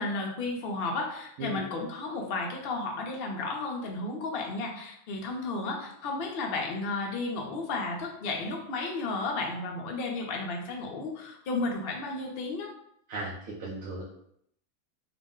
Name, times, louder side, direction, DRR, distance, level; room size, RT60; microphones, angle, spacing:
voice 1, 0.0-12.7, left 3 dB, 50° left, 0 dB, 0.7 m, -33 dB
voice 2, 13.1-14.0, right 2 dB, 70° right, -5 dB, 1.1 m, -36 dB
3.9 x 2.1 x 3.6 m, 0.71 s
omnidirectional pair, 1.5 m